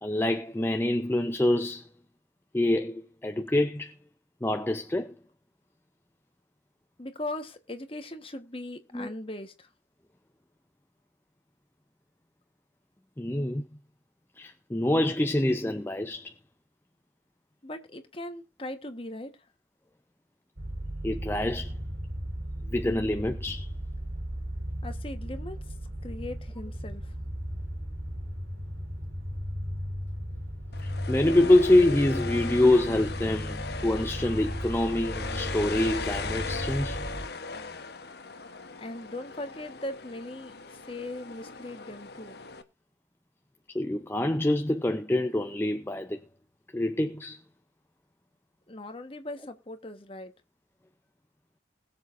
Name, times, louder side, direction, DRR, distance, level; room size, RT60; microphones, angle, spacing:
voice 1, 0.0-1.9 2.5-3.9 4.4-5.1 8.9-9.1 13.2-13.6 14.4-16.3 21.0-21.8 22.7-23.7 30.8-37.0 43.7-46.2 46.7-47.4, left 1 dB, 10° left, 0.5 m, -26 dB
voice 2, 7.0-9.7 17.6-19.3 24.8-25.6 26.0-27.1 38.8-42.3 48.7-50.3, left 1 dB, 30° left, 1.3 m, -39 dB
sound 1, 20.6-37.3, equal, 75° right, 4.6 m, -36 dB
sound 2, 30.7-42.6, left 4 dB, 55° left, 1.1 m, -39 dB
21.0 x 7.2 x 2.6 m
head